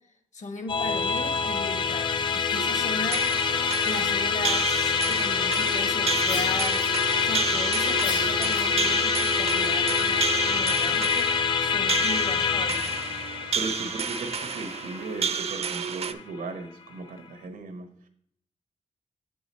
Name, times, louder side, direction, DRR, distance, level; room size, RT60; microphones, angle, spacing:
voice 1, 0.3-11.3 11.6-13.1, left 2 dB, 55° left, 7 dB, 0.9 m, -37 dB
Musical instrument, 0.7-16.2, left 6 dB, 35° left, 0.4 m, -26 dB
sound 1, 2.5-16.1, right 6 dB, 45° right, 0.4 m, -31 dB
sound 2, 6.2-7.4 8.0-9.1, left 3 dB, 75° left, 1.6 m, -39 dB
voice 2, 13.5-17.9, right 3 dB, 90° right, 8 dB, 0.9 m, -37 dB
7.4 x 4.7 x 4.2 m, 0.68 s
wide cardioid pair, 135°, 14 cm